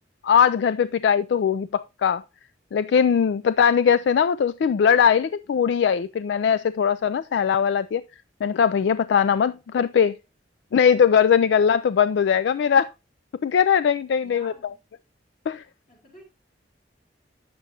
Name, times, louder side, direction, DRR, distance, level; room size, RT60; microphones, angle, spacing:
voice 1, 0.2-2.2 2.7-8.0 8.4-10.2 10.7-12.9 13.4-14.5 15.5-15.6, left 7 dB, 70° left, 0.3 m, -20 dB
voice 2, 14.2-14.8 15.9-16.2, left 1 dB, 45° left, 4.5 m, -48 dB
9.4 x 6.9 x 2.9 m
head